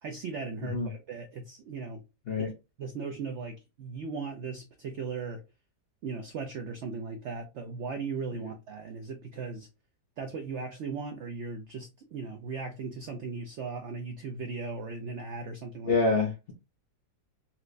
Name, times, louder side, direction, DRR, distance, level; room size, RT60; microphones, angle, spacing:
voice 1, 0.0-2.0 2.4-2.5 2.8-5.4 6.0-9.7 10.2-16.0, right 4 dB, 80° right, 0.6 m, -37 dB
voice 2, 15.8-16.5, left 3 dB, 55° left, 0.7 m, -27 dB
4.3 x 2.0 x 2.4 m
omnidirectional pair, 1.7 m